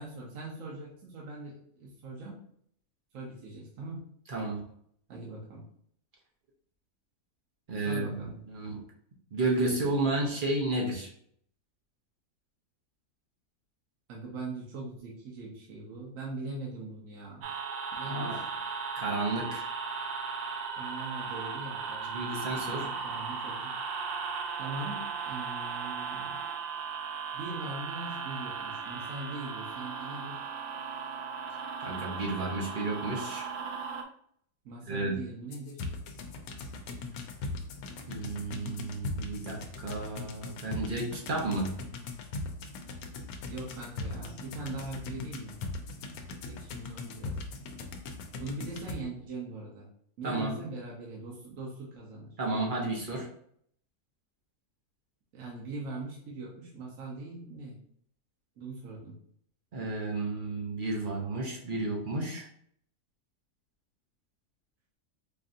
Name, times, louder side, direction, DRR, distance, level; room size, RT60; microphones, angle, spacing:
voice 1, 0.0-1.5 1.8-2.3 3.1-4.0 5.1-5.6 7.8-8.4 14.1-17.5 18.0-18.5 20.7-23.7 24.6-26.3 27.3-30.4 34.6-35.9 43.5-45.6 46.4-47.4 48.4-49.9 50.2-52.4 55.3-57.8 58.6-59.2, right 2 dB, 65° right, -4 dB, 1.2 m, -41 dB
voice 2, 4.3-4.6 7.7-8.2 8.5-8.8 9.3-11.1 18.1-18.4 18.9-19.7 22.1-22.9 31.8-33.5 34.9-35.2 38.1-41.7 50.2-50.6 52.4-53.3 59.7-62.5, right 2 dB, 45° right, -1 dB, 0.7 m, -32 dB
sound 1, 17.4-34.0, right 5 dB, 90° right, 1.1 m, -37 dB
sound 2, 35.5-48.9, left 3 dB, 80° left, 1.0 m, -40 dB
5.0 x 2.6 x 2.5 m, 0.66 s
omnidirectional pair, 1.6 m